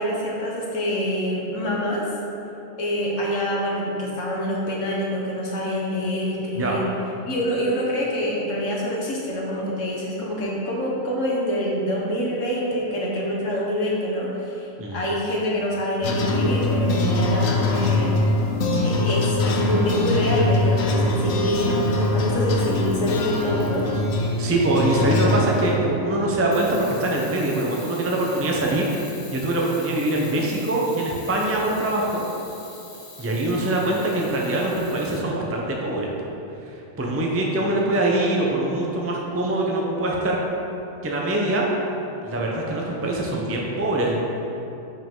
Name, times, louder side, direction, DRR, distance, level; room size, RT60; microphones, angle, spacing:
voice 1, 0.0-2.1 2.8-6.8 7.2-18.1 18.8-23.9 37.7-37.9, equal, 70° left, -3 dB, 1.6 m, -26 dB
sound 1, 16.0-25.8, left 2 dB, 90° left, 1.1 m, -23 dB
Camera, 21.4-22.2 22.6-24.1 26.5-35.2, left 3 dB, 30° left, 0.5 m, -43 dB
voice 2, 24.4-32.2 33.2-36.1 36.6-40.4 41.0-41.7 42.2-44.2, right 1 dB, 15° right, -2 dB, 0.5 m, -23 dB
7.6 x 5.4 x 3.8 m, 2.9 s
omnidirectional pair, 1.4 m